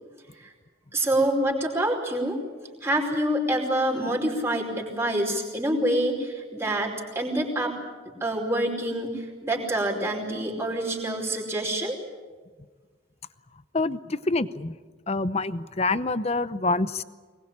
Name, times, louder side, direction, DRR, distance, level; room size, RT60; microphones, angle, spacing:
voice 1, 0.9-2.4 2.8-7.7 8.2-12.0, right 1 dB, 15° right, -1 dB, 5.0 m, -26 dB
voice 2, 13.7-14.8 15.1-17.0, left 3 dB, 30° left, 14 dB, 0.8 m, -26 dB
24.0 x 21.0 x 8.8 m, 1.4 s
head